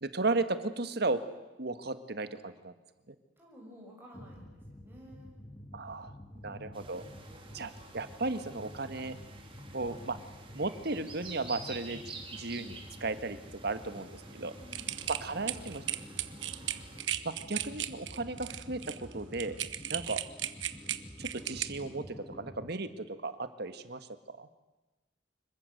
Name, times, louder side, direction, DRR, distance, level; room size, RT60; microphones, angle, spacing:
voice 1, 0.0-1.2 1.6-2.7 3.1-3.2 5.7-6.1 6.4-7.0 7.5-9.2 9.7-10.2 10.5-12.0 12.3-13.4 13.6-14.1 14.3-14.5 15.1-15.8 17.2-19.6 19.9-20.2 21.2-24.1 24.4-24.5, right 3 dB, 60° right, 11 dB, 1.6 m, -35 dB
voice 2, 3.4-5.3 6.3-6.7 13.8-16.8 18.2-18.4 19.8-20.0, equal, 10° right, -3 dB, 6.3 m, -55 dB
sound 1, 4.1-22.7, left 1 dB, 15° left, 1.5 m, -49 dB
sound 2, 6.7-17.0, right 4 dB, 30° right, 3.7 m, -50 dB
sound 3, 14.7-21.6, right 12 dB, 85° right, 1.2 m, -36 dB
26.0 x 22.0 x 7.9 m, 1.1 s
head